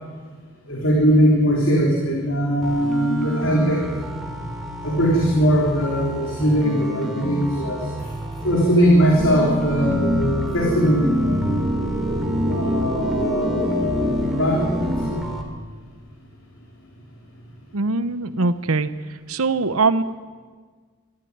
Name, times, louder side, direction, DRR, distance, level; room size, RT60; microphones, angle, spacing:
voice 1, 0.7-3.9 4.8-8.1 8.4-11.4 12.5-15.3, equal, 60° left, -1 dB, 3.6 m, -20 dB
sound 1, 2.6-15.4, equal, ahead, 2.8 m, -31 dB
sound 2, 9.2-15.1, equal, 25° right, 2.4 m, -25 dB
voice 2, 17.7-18.9 19.3-20.0, right 3 dB, 80° right, 13 dB, 0.9 m, -21 dB
23.0 x 14.0 x 9.4 m, 1.5 s
head